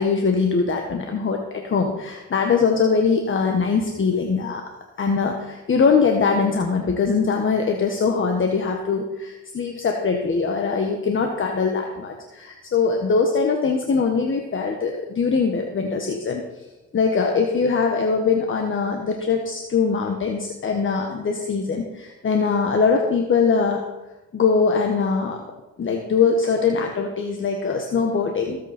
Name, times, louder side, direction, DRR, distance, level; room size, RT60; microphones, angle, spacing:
voice 1, 0.0-4.6 5.0-16.4 16.9-23.8 24.3-25.4 25.8-28.6, left 5 dB, 40° left, 3 dB, 1.5 m, -22 dB
20.0 x 8.5 x 4.4 m, 1.1 s
cardioid pair, 90°, 30 cm